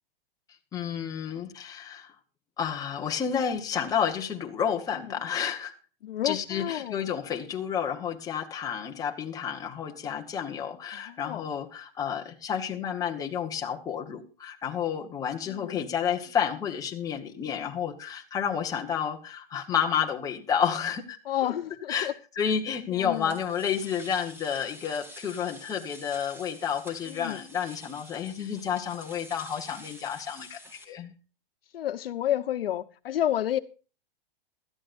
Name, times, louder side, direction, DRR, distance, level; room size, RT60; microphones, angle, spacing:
voice 1, 0.7-2.1 2.6-5.7 6.2-21.5 21.9-31.1, left 8 dB, 10° left, 1.2 m, -30 dB
voice 2, 6.0-7.0 10.9-11.4 15.5-15.8 21.3-22.1 22.9-23.3 27.1-27.4 31.7-33.6, left 11 dB, 75° left, 1.0 m, -30 dB
sound 1, 23.1-30.8, left 1 dB, 5° right, 2.8 m, -48 dB
19.5 x 13.0 x 2.6 m
hypercardioid pair, 160°, 29 cm